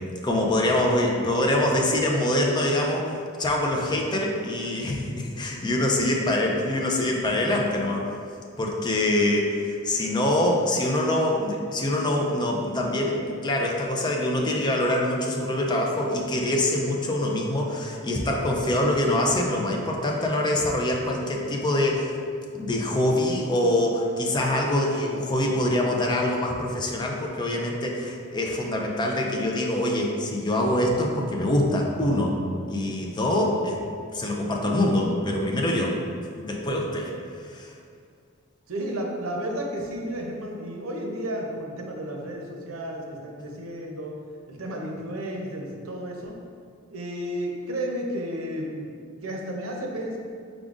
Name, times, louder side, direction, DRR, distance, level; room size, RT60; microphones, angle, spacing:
voice 1, 0.0-8.0 8.6-22.1 22.5-32.4 32.7-33.8 34.1-36.0 36.4-37.1 37.4-37.7, left 1 dB, 20° left, 0 dB, 0.4 m, -24 dB
voice 2, 38.7-44.2 44.5-46.4 46.9-48.9 49.2-50.2, equal, 90° right, 1 dB, 0.6 m, -32 dB
4.9 x 3.6 x 2.4 m, 2.3 s
head